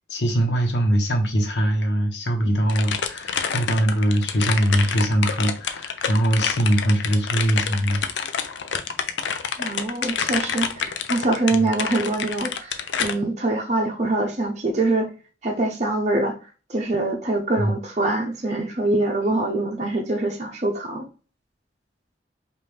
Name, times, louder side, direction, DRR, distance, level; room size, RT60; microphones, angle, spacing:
voice 1, 0.1-8.0 11.5-11.7 17.6-17.7, right 1 dB, 75° left, 3 dB, 1.1 m, -22 dB
sound 1, 2.7-13.1, left 7 dB, 90° left, 0.5 m, -27 dB
voice 2, 9.6-15.1 15.4-16.4 16.7-21.0, right 2 dB, 40° right, 1 dB, 0.7 m, -24 dB
5.1 x 2.5 x 3.2 m, 0.36 s
head